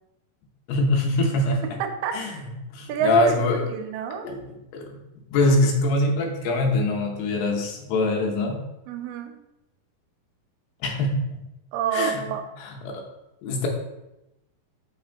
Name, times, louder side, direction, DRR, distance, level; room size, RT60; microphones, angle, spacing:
voice 1, 0.7-1.7 2.1-2.3 2.7-3.6 4.2-4.4 4.7-5.0 5.3-8.6 10.8-11.4 11.9-12.2 12.6-13.0 13.4-13.7, left 2 dB, 90° left, 2 dB, 3.2 m, -23 dB
voice 2, 1.8-2.4 2.9-4.3 8.9-9.4 11.7-12.4, right 8 dB, 80° right, 5 dB, 2.6 m, -29 dB
6.4 x 6.3 x 3.5 m, 0.91 s
omnidirectional pair, 4.5 m